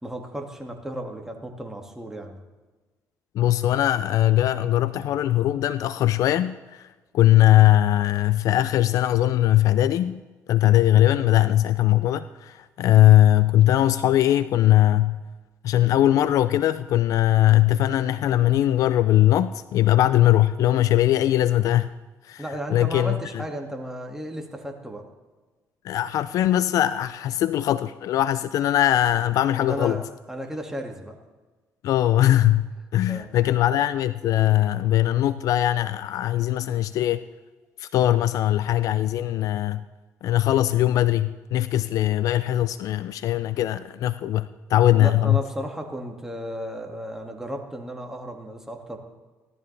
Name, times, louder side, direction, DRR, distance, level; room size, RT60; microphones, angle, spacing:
voice 1, 0.0-2.4 22.4-25.1 29.6-31.2 33.0-33.3 45.0-49.0, equal, 5° right, 2 dB, 2.1 m, -34 dB
voice 2, 3.3-6.9 7.1-10.2 10.5-15.2 15.6-21.9 22.2-22.4 22.7-23.4 25.8-30.0 31.8-32.7 32.9-37.2 37.8-39.8 40.2-45.4, left 13 dB, 70° left, 14 dB, 0.4 m, -20 dB
16.5 x 12.5 x 3.3 m, 1.3 s
cardioid pair, 85°, 6 cm